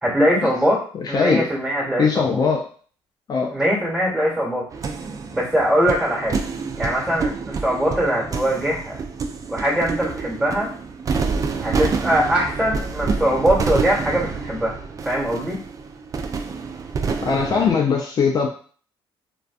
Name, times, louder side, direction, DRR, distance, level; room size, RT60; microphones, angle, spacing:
voice 1, 0.0-0.8 1.1-2.4 3.5-4.6 5.3-6.4 6.8-9.0 9.5-10.7 11.6-14.7 15.0-15.6, equal, 10° right, -4 dB, 1.4 m, -21 dB
voice 2, 0.9-1.5 2.0-2.7 3.3-3.6 17.2-18.5, left 5 dB, 40° left, 0 dB, 0.4 m, -20 dB
sound 1, 4.7-17.7, right 4 dB, 35° right, 0.3 m, -28 dB
2.5 x 2.3 x 2.4 m, 0.44 s
cardioid pair, 90°, 10 cm